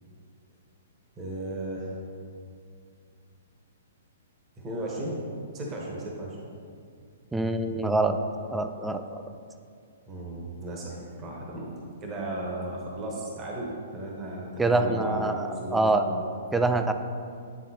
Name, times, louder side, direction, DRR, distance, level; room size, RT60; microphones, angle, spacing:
voice 1, 1.2-2.0 4.6-5.2 5.5-6.4 10.1-11.7 12.0-16.2, right 1 dB, 25° right, -3 dB, 1.1 m, -35 dB
voice 2, 7.3-8.2 8.5-9.2 14.6-16.0 16.5-16.9, right 2 dB, 5° right, 7 dB, 0.3 m, -25 dB
9.4 x 3.6 x 2.8 m, 2.3 s
hypercardioid pair, 135°, 0 cm